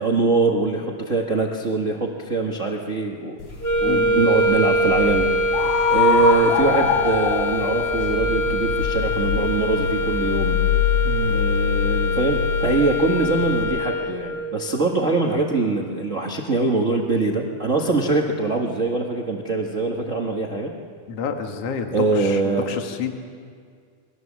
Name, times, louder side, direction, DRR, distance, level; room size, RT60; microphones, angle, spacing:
voice 1, 0.0-3.4 3.8-10.6 11.3-20.7 21.9-22.7, right 3 dB, 35° right, 0 dB, 1.2 m, -23 dB
sound 1, 3.4-13.6, left 5 dB, 85° left, 5.6 m, -24 dB
sound 2, 3.6-14.5, left 1 dB, 20° left, 2.2 m, -24 dB
voice 2, 3.8-4.2 11.0-11.5 21.1-23.1, left 6 dB, 55° left, 4 dB, 2.6 m, -29 dB
28.0 x 22.5 x 7.4 m, 2.1 s
omnidirectional pair, 3.6 m